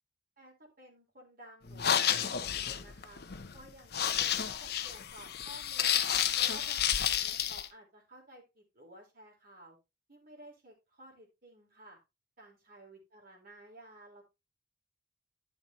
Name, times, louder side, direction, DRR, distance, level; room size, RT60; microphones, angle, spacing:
voice 1, 0.4-3.2 3.5-6.0 6.3-9.8 10.1-12.0 12.4-14.2, right 1 dB, 50° right, 0 dB, 3.9 m, -54 dB
sound 1, 1.7-7.7, left 9 dB, 60° left, 0.8 m, -31 dB
12.0 x 5.9 x 3.1 m, 0.24 s
head